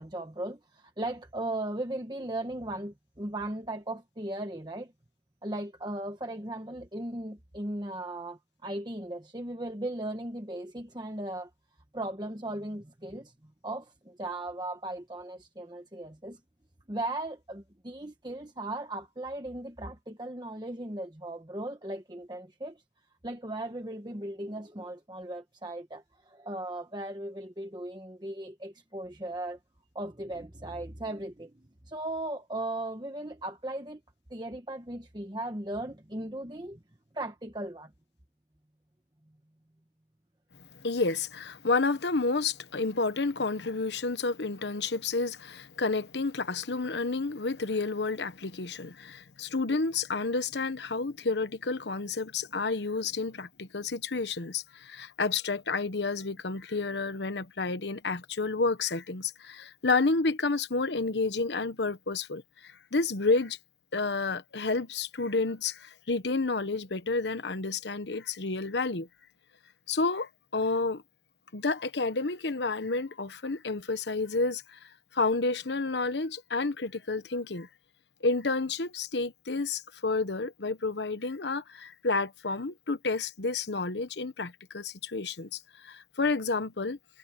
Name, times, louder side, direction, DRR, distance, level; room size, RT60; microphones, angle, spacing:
voice 1, 0.0-4.9 5.4-11.5 11.9-16.4 16.9-22.8 23.2-29.6 29.9-34.0 34.3-36.8 37.1-37.9, right 1 dB, 25° right, 1.2 m, -37 dB
voice 2, 40.7-63.6 63.9-69.1 69.9-71.0 71.5-74.8 75.1-77.7 78.2-87.0, left 3 dB, 85° left, 1.1 m, -30 dB
head